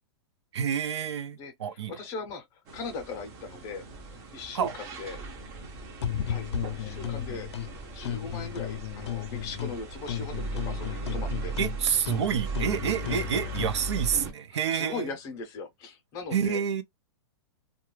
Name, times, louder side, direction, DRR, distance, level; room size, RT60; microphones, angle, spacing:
voice 1, 0.5-1.9 4.5-4.7 11.6-15.1 16.3-16.8, right 8 dB, 85° right, 0.6 m, -28 dB
voice 2, 1.4-5.2 6.3-7.5 7.9-11.5 14.7-16.6, left 4 dB, 25° left, 0.6 m, -39 dB
sound 1, 2.7-14.3, right 2 dB, 25° right, 0.5 m, -38 dB
sound 2, 6.0-7.7 8.0-9.8 10.1-13.8, left 10 dB, 80° left, 0.5 m, -34 dB
2.4 x 2.2 x 3.0 m
supercardioid pair, 165°, 14 cm